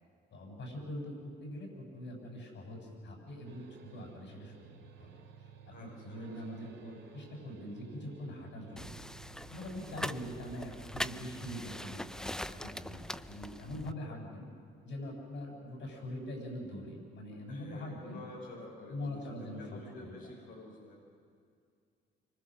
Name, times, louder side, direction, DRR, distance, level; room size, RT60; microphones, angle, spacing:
voice 1, 0.3-4.7 5.0-5.2 5.7-9.0 9.5-14.5 14.8-18.2 18.9-20.1, left 1 dB, 70° left, 1 dB, 7.3 m, -43 dB
sound 1, 3.4-12.0, right 7 dB, 65° right, 2.7 m, -55 dB
voice 2, 5.7-6.3 17.5-21.0, left 2 dB, 85° left, -5 dB, 5.5 m, -49 dB
sound 2, 8.8-13.9, left 1 dB, 5° left, 0.5 m, -42 dB
26.0 x 24.5 x 6.3 m, 2.2 s
cardioid pair, 90°, 20 cm